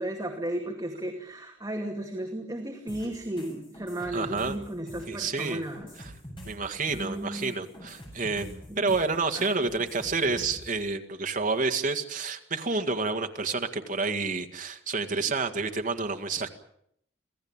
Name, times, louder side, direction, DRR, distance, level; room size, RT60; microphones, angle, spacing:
voice 1, 0.0-5.9 6.9-7.6 8.7-8.9 9.4-9.6, right 1 dB, 15° right, 1 dB, 2.4 m, -34 dB
sound 1, 2.9-10.7, equal, 25° left, 7.6 m, -45 dB
voice 2, 4.1-4.6 5.1-5.6 6.0-6.1 6.4-16.5, right 4 dB, 40° right, 4 dB, 2.0 m, -29 dB
27.0 x 17.0 x 8.9 m, 0.72 s
head